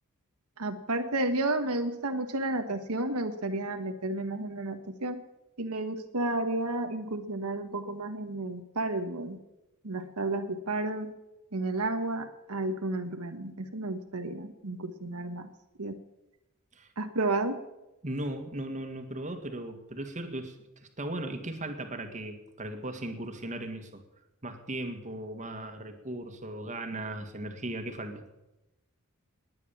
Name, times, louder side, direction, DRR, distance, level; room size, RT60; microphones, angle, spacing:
voice 1, 0.6-5.2 5.6-9.4 9.8-11.1 11.5-15.5 15.8-16.0 17.0-17.6, right 2 dB, 85° right, 6 dB, 1.4 m, -32 dB
voice 2, 18.0-20.6 21.0-24.0 24.4-28.2, right 1 dB, 35° right, 6 dB, 1.9 m, -37 dB
19.5 x 10.0 x 7.1 m, 0.95 s
head